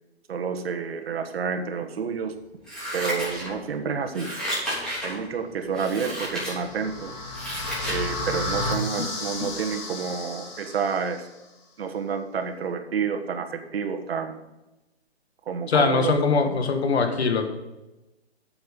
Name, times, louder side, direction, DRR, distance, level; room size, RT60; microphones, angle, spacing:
voice 1, 0.3-2.4 2.9-4.3 5.0-7.1 7.9-11.3 11.8-14.4 15.4-16.1 16.4-16.6, right 6 dB, 60° right, 5 dB, 1.5 m, -29 dB
Scissors, 2.6-3.7 4.1-5.1 5.7-6.5 7.0-8.0 8.4-8.5, equal, ahead, 3.4 m, -32 dB
sound 1, 6.1-11.2, left 2 dB, 45° left, 2.3 m, -33 dB
voice 2, 15.7-17.5, left 4 dB, 70° left, 6 dB, 1.8 m, -22 dB
8.8 x 7.6 x 5.3 m, 0.99 s
hypercardioid pair, 155°, 33 cm